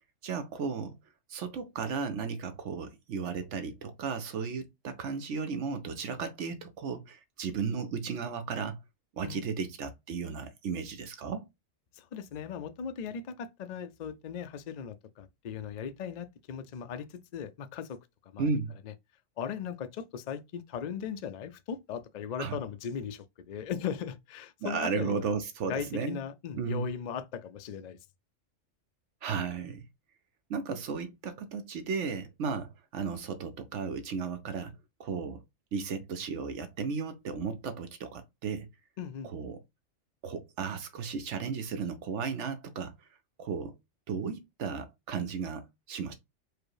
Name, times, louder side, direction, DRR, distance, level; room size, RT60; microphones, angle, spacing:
voice 1, 0.2-1.0 1.3-8.8 9.2-11.5 18.4-18.7 22.4-22.6 24.6-26.2 26.6-26.9 29.2-29.9 30.5-34.7 35.0-35.4 35.7-38.7 39.2-39.6 40.2-42.9 43.4-43.7 44.1-46.1, right 5 dB, 70° right, 0.9 m, -34 dB
voice 2, 11.9-18.0 18.3-18.5 19.4-25.3 25.7-28.0 39.0-39.3, left 7 dB, 65° left, 0.4 m, -38 dB
4.8 x 2.0 x 4.7 m
omnidirectional pair, 1.3 m